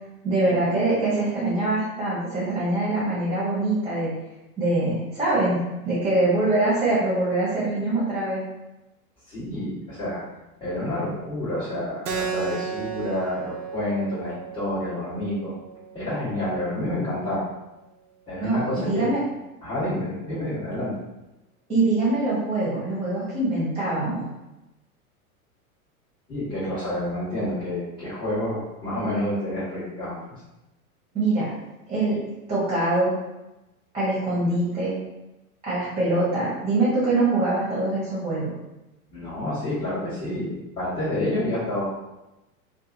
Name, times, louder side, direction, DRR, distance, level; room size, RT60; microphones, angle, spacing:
voice 1, 0.2-4.1 4.6-5.6 5.8-8.4 18.4-19.2 21.7-24.3 31.1-31.5 31.9-32.2 32.5-33.1 33.9-34.9 35.6-38.5, right 2 dB, 15° right, -8 dB, 1.0 m, -23 dB
voice 2, 9.3-10.2 10.6-15.5 15.9-17.4 18.3-19.1 19.6-21.0 26.3-30.2 39.1-41.8, left 1 dB, 10° left, -14 dB, 1.3 m, -29 dB
Keyboard (musical), 12.0-17.1, right 6 dB, 90° right, 0.5 m, -35 dB
2.6 x 2.5 x 2.6 m, 0.99 s
hypercardioid pair, 100°, 44 cm